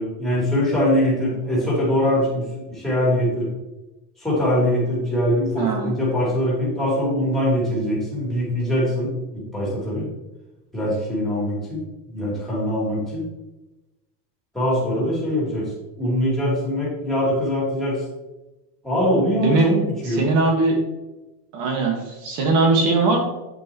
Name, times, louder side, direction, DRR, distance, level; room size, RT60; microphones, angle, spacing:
voice 1, 0.0-3.5 4.2-10.0 10.7-11.8 12.1-13.2 14.5-15.7 16.0-18.0 18.8-19.8 20.0-20.2, equal, ahead, -7 dB, 3.1 m, -22 dB
voice 2, 5.6-5.9 19.4-19.7 20.1-20.8 21.5-23.2, right 3 dB, 40° right, 2 dB, 1.7 m, -20 dB
8.7 x 8.5 x 3.1 m, 1.0 s
cardioid pair, 180°, 48 cm